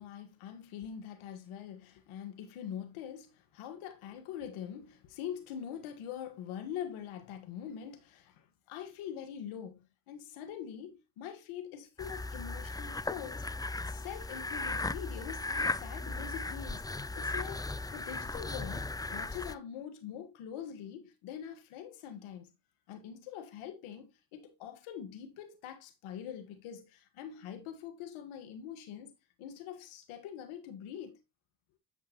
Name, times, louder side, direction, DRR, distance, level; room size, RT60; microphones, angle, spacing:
voice 1, 0.0-13.4 13.9-17.6 17.9-22.5 22.9-29.1 29.4-31.2, left 9 dB, 90° left, 1.6 m, -44 dB
sound 1, 12.0-19.5, left 3 dB, 10° left, 0.4 m, -37 dB
9.0 x 6.4 x 2.9 m
supercardioid pair, 55°, 48 cm